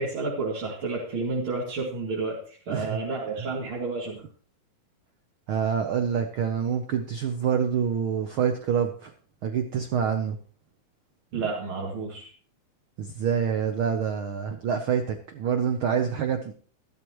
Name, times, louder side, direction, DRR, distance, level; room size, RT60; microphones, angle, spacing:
voice 1, 0.0-4.2 11.3-12.3, right 3 dB, 45° right, -5 dB, 2.8 m, -31 dB
voice 2, 5.5-9.1 9.4-10.4 13.0-16.5, right 7 dB, 90° right, 6 dB, 1.1 m, -26 dB
14.0 x 12.5 x 3.1 m, 0.43 s
omnidirectional pair, 3.6 m